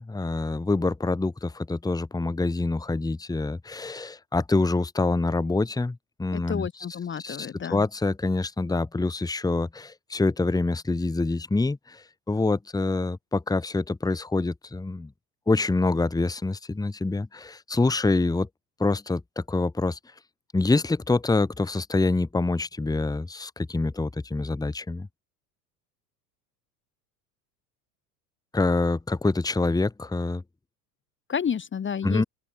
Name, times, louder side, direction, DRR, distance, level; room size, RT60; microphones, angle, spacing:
voice 1, 0.0-6.7 7.2-15.1 15.5-18.5 18.8-20.0 20.5-25.1 28.5-30.4 32.0-32.2, left 3 dB, 5° left, 1.5 m, -26 dB
voice 2, 6.3-7.9 31.3-32.2, left 7 dB, 25° left, 1.4 m, -30 dB
open air
hypercardioid pair, 80°, 49 cm